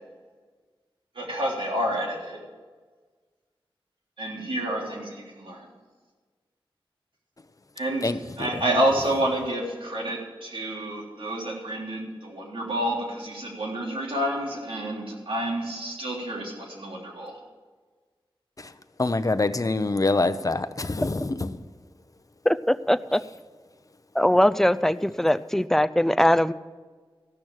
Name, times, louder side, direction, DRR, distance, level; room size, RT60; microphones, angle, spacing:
voice 1, 1.2-2.4 4.2-5.7 7.8-8.1 8.4-17.4, right 1 dB, 70° right, -2 dB, 3.5 m, -29 dB
voice 2, 19.0-21.6, left 3 dB, 40° left, 12 dB, 0.7 m, -25 dB
voice 3, 22.4-23.2 24.1-26.5, left 1 dB, 5° left, 12 dB, 0.5 m, -21 dB
15.0 x 6.2 x 8.9 m, 1.4 s
wide cardioid pair, 60°, 9 cm